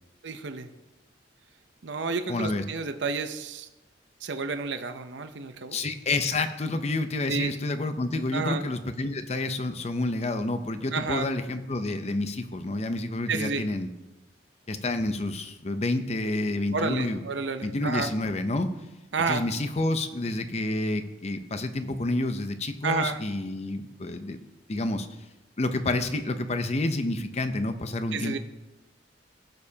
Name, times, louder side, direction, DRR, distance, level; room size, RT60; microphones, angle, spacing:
voice 1, 0.2-0.7 1.8-3.7 4.2-5.8 7.3-7.5 8.3-8.6 10.9-11.3 13.3-13.6 16.7-18.1 19.1-19.4 22.8-23.2 28.1-28.4, right 4 dB, 70° right, 9 dB, 0.6 m, -30 dB
voice 2, 2.3-2.6 5.7-13.9 14.7-17.2 17.6-18.7 19.3-24.4 24.7-25.1 25.6-28.4, left 2 dB, 35° left, 9 dB, 0.6 m, -29 dB
17.0 x 6.6 x 2.8 m, 1.0 s
head